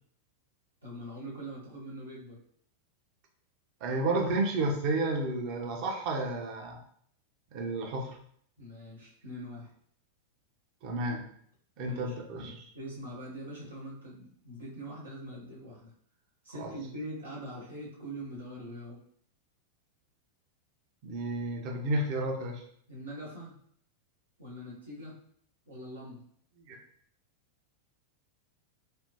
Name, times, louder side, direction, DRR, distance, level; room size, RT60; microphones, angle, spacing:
voice 1, 0.8-2.4 8.6-9.7 11.8-12.2 12.7-15.9 16.4-19.0 22.9-23.6 24.4-25.1 25.7-26.3, equal, 75° right, -6 dB, 1.0 m, -43 dB
voice 2, 3.8-6.8 7.5-8.2 10.8-11.2 11.8-12.7 16.6-16.7 21.0-22.6 26.7-26.8, right 2 dB, 40° right, 2 dB, 0.7 m, -31 dB
3.4 x 2.6 x 2.7 m, 0.63 s
figure-of-eight pair, 90°, 0 cm